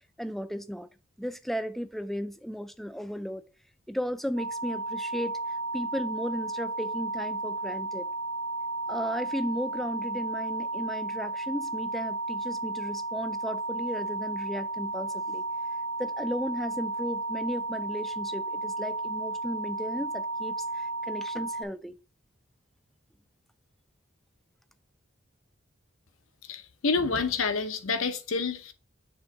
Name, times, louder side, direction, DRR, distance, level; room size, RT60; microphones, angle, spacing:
voice 1, 0.2-0.9 1.2-3.4 3.9-8.1 8.9-15.4 16.0-22.0, equal, ahead, 0.3 m, -35 dB
sound 1, 4.4-21.6, right 2 dB, 70° right, 0.7 m, -33 dB
voice 2, 26.5-28.7, left 4 dB, 85° left, 0.8 m, -28 dB
7.0 x 3.7 x 4.1 m
head